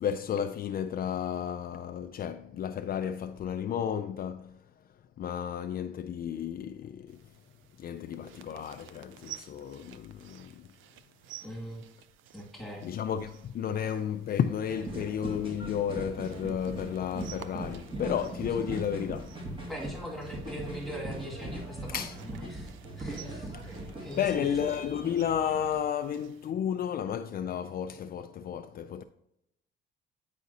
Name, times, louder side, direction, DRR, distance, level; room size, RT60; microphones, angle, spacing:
voice 1, 0.0-4.5 5.2-7.2 7.8-10.7 12.8-19.4 21.9-22.2 24.2-29.0, left 8 dB, 50° left, 0.4 m, -32 dB
sound 1, 7.1-26.5, right 13 dB, 85° right, 0.5 m, -54 dB
voice 2, 11.4-11.8 12.3-12.9 19.7-24.5, equal, ahead, 2.2 m, -41 dB
sound 2, 14.7-25.8, right 1 dB, 25° right, 1.8 m, -40 dB
9.3 x 5.0 x 2.7 m
cardioid pair, 90°, 20 cm